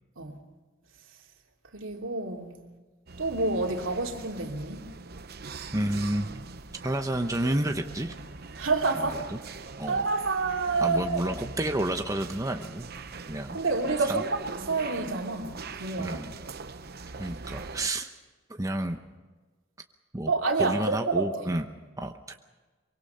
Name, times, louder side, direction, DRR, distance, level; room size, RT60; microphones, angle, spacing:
voice 1, 1.7-2.6 3.2-4.8 8.6-9.3 9.9-11.3 13.5-16.2 20.2-21.5, right 3 dB, 75° right, 3.0 m, -28 dB
sound 1, 3.1-17.9, right 4 dB, 50° right, 0.9 m, -42 dB
voice 2, 5.7-6.3 6.8-8.1 8.9-9.4 9.8-10.1 10.8-12.9 13.3-13.6 14.1-14.2 16.0-16.4 17.2-18.1 18.5-19.0 20.1-20.3 20.6-21.7 22.0-22.3, right 1 dB, 15° right, 0.9 m, -30 dB
24.5 x 24.0 x 5.6 m
head